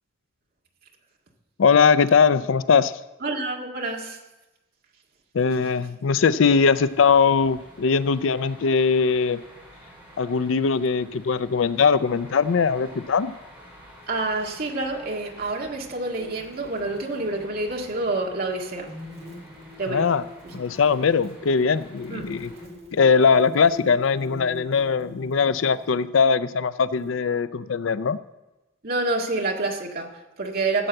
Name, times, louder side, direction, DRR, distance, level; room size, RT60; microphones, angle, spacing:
voice 1, 1.6-2.9 5.3-9.4 10.2-13.3 19.9-20.2 20.5-22.5 22.9-28.2, left 5 dB, 80° left, 15 dB, 0.5 m, -20 dB
voice 2, 3.2-4.2 14.1-18.9 19.8-20.1 22.1-22.3 28.8-30.9, right 2 dB, 50° right, 1 dB, 1.8 m, -28 dB
sound 1, 6.7-22.7, equal, 10° right, 4.2 m, -49 dB
sound 2, 16.1-17.5 18.0-18.2 18.9-26.0 26.9-27.4, left 2 dB, 35° right, 2.8 m, -45 dB
14.0 x 7.8 x 7.8 m, 1.0 s
head